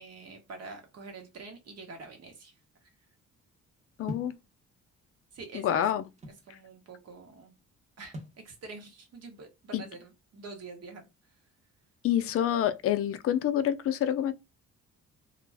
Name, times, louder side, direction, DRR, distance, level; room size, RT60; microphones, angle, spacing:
voice 1, 0.0-2.5 5.3-5.8 6.5-7.5 8.0-8.1 8.4-11.1, right 3 dB, 55° right, 1.0 m, -46 dB
voice 2, 4.0-4.3 5.5-6.0 9.7-9.8 12.0-14.3, left 10 dB, 50° left, 0.4 m, -27 dB
sound 1, 4.1-4.4 5.3-6.5 8.1-8.4, equal, 25° right, 0.9 m, -41 dB
2.4 x 2.1 x 3.3 m
cardioid pair, 90°, 30 cm